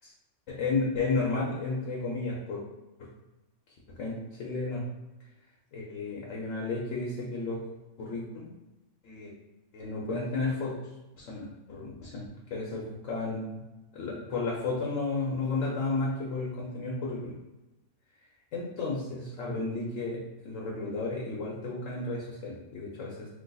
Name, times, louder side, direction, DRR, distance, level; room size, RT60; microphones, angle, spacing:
voice 1, 0.5-2.6 3.0-3.1 4.0-4.8 5.7-7.6 8.0-8.5 9.0-9.3 9.7-10.7 11.2-13.6 13.9-17.3 18.5-23.3, left 3 dB, 85° left, -4 dB, 1.1 m, -33 dB
3.9 x 2.8 x 2.3 m, 1.1 s
omnidirectional pair, 1.3 m